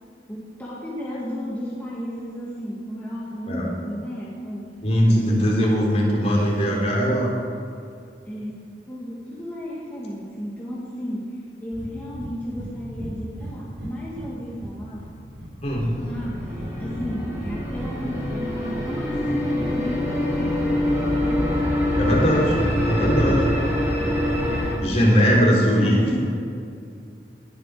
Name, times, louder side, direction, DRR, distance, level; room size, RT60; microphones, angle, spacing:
voice 1, 0.3-4.7 5.0-7.1 8.3-15.1 15.9-20.9 21.2-21.5 24.8-25.4 25.8-26.3, equal, 10° left, -7 dB, 2.0 m, -33 dB
voice 2, 4.8-7.3 15.6-15.9 22.0-23.5 24.8-26.0, equal, 40° left, -3 dB, 3.7 m, -20 dB
Breathing, 11.7-11.9 12.1-12.3 12.6-12.7 13.0-14.3 14.6-15.5 15.8-16.7 17.0-17.9, right 1 dB, 75° right, 3.1 m, -36 dB
sound 1, 15.6-24.7, left 1 dB, 15° right, 4.5 m, -25 dB
20.0 x 11.5 x 5.0 m, 2.4 s
head